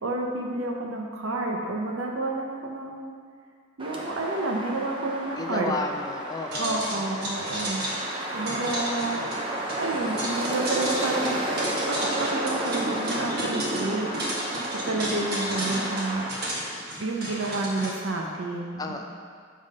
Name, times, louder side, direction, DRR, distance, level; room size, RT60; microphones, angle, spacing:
voice 1, 0.0-3.1 3.8-5.7 6.6-7.8 8.3-9.2 9.8-11.4 11.9-14.1 14.9-16.2 17.0-19.0, right 2 dB, 90° right, 0 dB, 0.7 m, -29 dB
sound 1, 3.8-16.3, right 1 dB, 25° right, 0.7 m, -32 dB
voice 2, 5.4-6.9 18.8-19.1, left 2 dB, 20° left, 4 dB, 0.4 m, -32 dB
sound 2, 6.5-17.9, right 1 dB, 50° right, 1.3 m, -34 dB
7.3 x 3.7 x 5.2 m, 2.1 s
head